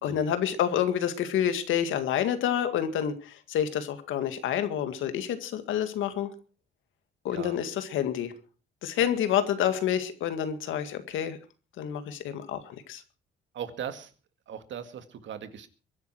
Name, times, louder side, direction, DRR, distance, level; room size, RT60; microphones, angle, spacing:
voice 1, 0.0-6.3 7.2-8.3 8.8-11.4 11.8-13.0, left 9 dB, 85° left, 9 dB, 2.0 m, -28 dB
voice 2, 13.5-14.1 14.5-15.7, right 8 dB, 70° right, 9 dB, 2.1 m, -39 dB
23.0 x 10.5 x 4.6 m, 0.37 s
cardioid pair, 90°, 20 cm